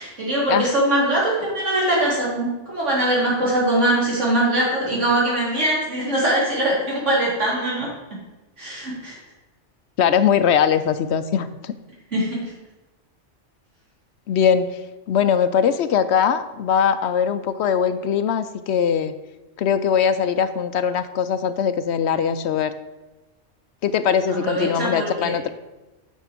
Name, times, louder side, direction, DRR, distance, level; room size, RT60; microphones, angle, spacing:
voice 1, 0.0-7.9 8.6-9.2 12.1-12.4 24.3-25.3, right 1 dB, 75° right, -6 dB, 3.7 m, -22 dB
voice 2, 10.0-11.7 14.3-14.7 15.1-19.1 19.6-22.7 23.8-25.5, left 7 dB, 70° left, 12 dB, 0.8 m, -21 dB
9.1 x 6.2 x 5.1 m, 1.1 s
omnidirectional pair, 1.2 m